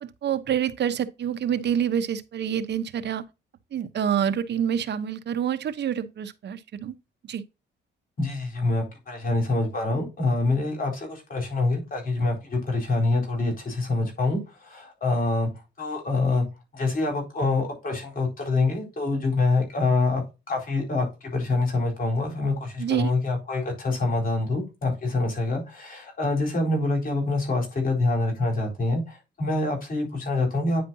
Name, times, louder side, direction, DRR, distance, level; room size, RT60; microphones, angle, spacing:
voice 1, 0.0-3.2 3.7-6.9 7.2-7.4 22.8-23.1, right 9 dB, 60° right, 1.1 m, -27 dB
voice 2, 8.2-15.5 15.8-16.5 16.7-30.8, left 2 dB, 45° left, 4.1 m, -26 dB
9.6 x 5.0 x 2.8 m
cardioid pair, 90°, 20 cm